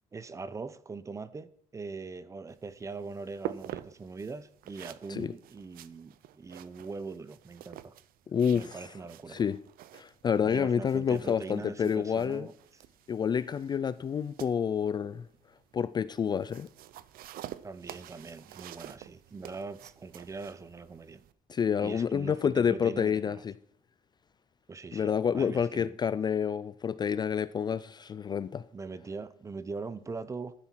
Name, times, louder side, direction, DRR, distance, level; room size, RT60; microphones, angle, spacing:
voice 1, 0.1-7.9 8.5-9.4 10.4-12.5 17.6-21.2 21.8-23.4 24.7-26.0 28.7-30.5, right 4 dB, 20° right, 0.7 m, -41 dB
sound 1, 2.5-21.3, right 13 dB, 75° right, 0.7 m, -48 dB
voice 2, 8.3-8.8 9.3-9.6 9.9-12.5 13.1-15.2 15.7-16.7 21.5-23.5 24.9-28.6, left 7 dB, 30° left, 0.4 m, -28 dB
12.0 x 9.9 x 4.5 m
cardioid pair, 155°, 15 cm